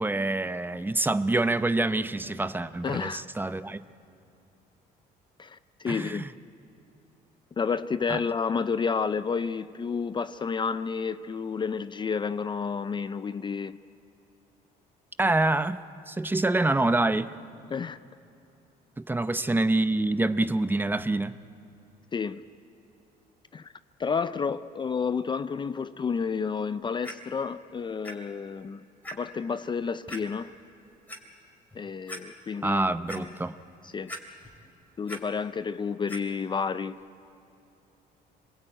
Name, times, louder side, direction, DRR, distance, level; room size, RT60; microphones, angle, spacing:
voice 1, 0.0-3.8 5.9-6.3 8.1-8.2 15.2-15.8 16.1-17.3 19.1-21.4 32.6-33.5, right 2 dB, 10° right, 0.7 m, -26 dB
voice 2, 2.8-3.2 5.4-6.3 7.6-13.8 17.7-18.0 22.1-22.4 23.5-23.7 24.0-28.8 29.1-30.5 31.7-32.8 33.1-33.3 33.8-34.1 35.0-37.0, left 5 dB, 30° left, 0.5 m, -30 dB
Clock, 27.0-27.1 28.0-28.1 28.6-28.7 29.0-29.1 30.1-30.2 30.9-31.2 31.7-31.8 32.1-32.2 32.7-33.2 34.1-34.6 34.9-35.2 36.1-36.2 36.9-37.0, equal, 10° left, 3.2 m, -39 dB
25.5 x 21.5 x 9.0 m
cardioid pair, 110°, 17 cm